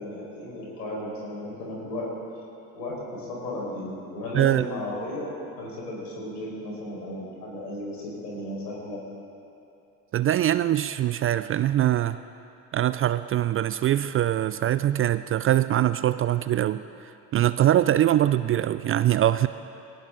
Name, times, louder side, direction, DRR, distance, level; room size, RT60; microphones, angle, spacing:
voice 1, 0.0-2.1 2.7-9.0, left 1 dB, 85° left, -4 dB, 4.9 m, -35 dB
voice 2, 4.3-4.7 10.1-12.2 12.7-19.5, right 12 dB, 30° right, 14 dB, 0.3 m, -23 dB
20.5 x 18.0 x 3.8 m, 2.7 s
hypercardioid pair, 65°, 48 cm